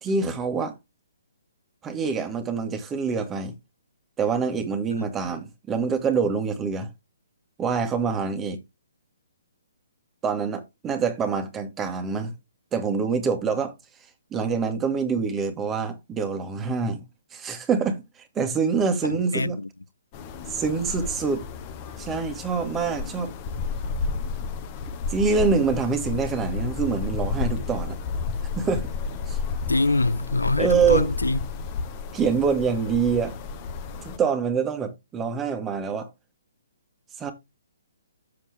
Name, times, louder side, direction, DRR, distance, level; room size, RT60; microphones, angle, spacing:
voice 1, 0.0-0.7 1.8-3.6 4.2-6.9 7.6-8.6 10.2-12.3 12.7-13.7 14.3-17.0 17.3-18.0 18.4-19.6 20.5-21.4 22.0-23.3 25.1-28.0 28.6-28.9 29.3-29.4 30.6-31.1 32.1-33.4 34.0-36.1 37.2-37.3, right 5 dB, 15° right, 1.8 m, -25 dB
voice 2, 19.0-19.7 29.7-31.5, left 2 dB, 80° left, 0.6 m, -24 dB
sound 1, 20.1-34.2, left 5 dB, 30° left, 1.3 m, -32 dB
7.6 x 7.6 x 3.6 m
figure-of-eight pair, 130°, 0 cm